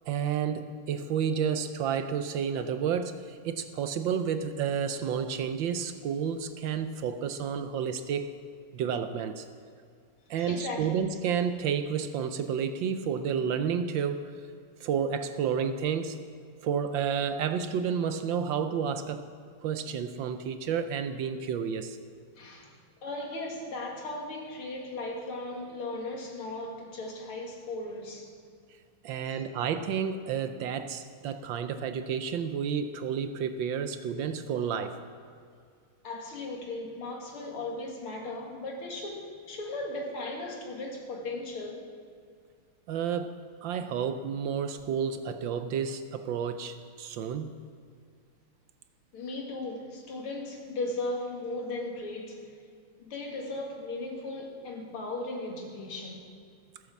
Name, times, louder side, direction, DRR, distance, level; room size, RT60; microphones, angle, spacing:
voice 1, 0.1-8.4 8.7-9.5 10.3-14.3 14.8-16.2 16.6-19.2 19.6-22.0 29.0-35.0 42.9-43.3 43.6-47.5, right 7 dB, 70° right, 9 dB, 1.3 m, -30 dB
voice 2, 10.4-10.9 22.4-28.3 29.2-29.4 36.0-41.9 49.1-52.5 53.0-56.3, left 2 dB, 85° left, 0 dB, 2.9 m, -37 dB
15.5 x 8.5 x 7.1 m, 2.3 s
omnidirectional pair, 2.3 m